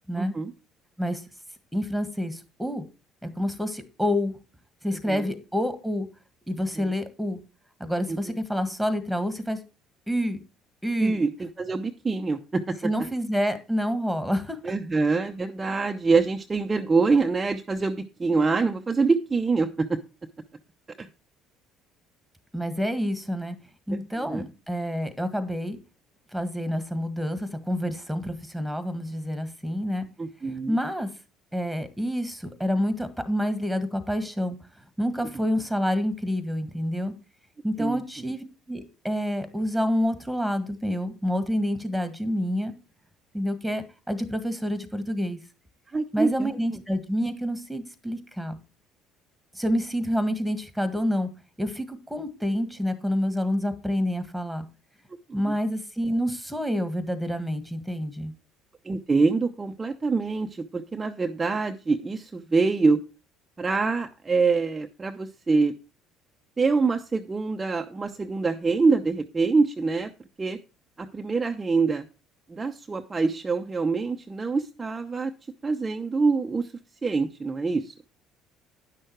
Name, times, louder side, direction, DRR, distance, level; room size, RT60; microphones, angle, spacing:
voice 1, 0.2-0.5 5.1-5.3 6.8-6.9 8.1-8.2 11.0-12.8 14.6-20.0 21.0-21.1 23.9-24.4 30.2-30.8 37.8-38.0 45.9-46.5 55.3-55.5 58.8-63.0 63.6-65.7 66.6-70.1 70.4-70.6 71.0-72.0 72.5-75.3 75.6-76.7 77.0-77.9, right 4 dB, 25° right, 4 dB, 0.8 m, -25 dB
voice 2, 1.7-2.9 3.2-4.3 4.8-6.1 6.5-7.4 7.8-9.6 10.1-10.4 10.8-11.1 12.8-14.7 22.5-23.5 23.9-25.8 26.3-30.1 30.7-31.1 31.5-34.6 35.0-37.1 37.6-42.7 43.3-45.4 46.1-48.6 49.5-51.3 51.6-54.6 55.3-58.3, equal, ahead, 11 dB, 1.7 m, -28 dB
9.8 x 6.5 x 4.6 m, 0.31 s
hypercardioid pair, 70°, 0 cm